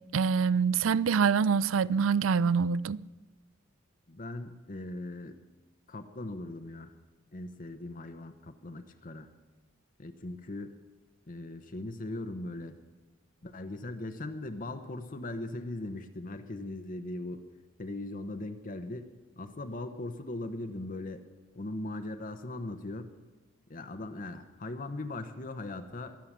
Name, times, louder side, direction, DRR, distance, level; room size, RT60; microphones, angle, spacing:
voice 1, 0.1-3.0, right 6 dB, 85° right, 0.4 m, -25 dB
voice 2, 4.1-5.4 5.9-6.9 7.3-9.3 10.0-10.7 11.3-12.8 13.4-17.4 17.8-19.1 19.4-21.2 21.5-23.1 23.7-26.2, left 2 dB, 45° left, 0.9 m, -39 dB
22.5 x 8.6 x 7.4 m
head